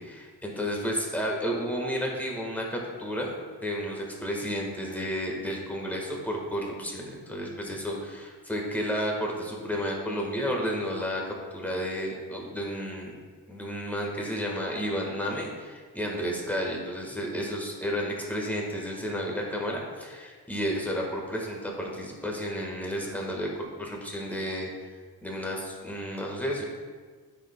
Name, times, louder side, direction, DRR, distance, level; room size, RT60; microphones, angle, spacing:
voice 1, 0.0-3.3 3.6-13.1 13.5-23.5 23.8-24.7 25.2-26.6, equal, 5° left, -1 dB, 1.5 m, -32 dB
13.5 x 5.0 x 2.2 m, 1.5 s
cardioid pair, 110°, 43 cm